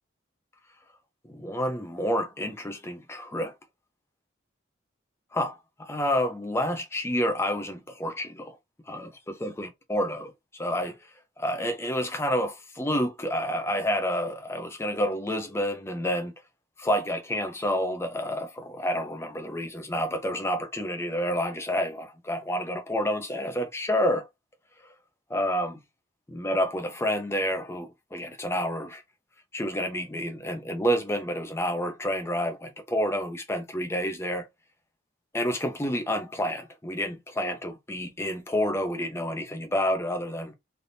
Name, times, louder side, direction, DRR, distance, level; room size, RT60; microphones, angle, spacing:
voice 1, 1.3-3.5 5.3-8.6 8.9-11.0 11.4-16.3 16.8-24.3 25.3-25.8 26.3-29.0 29.5-34.5 35.3-40.5, equal, 15° left, 0.6 m, -29 dB
3.4 x 2.7 x 2.7 m
head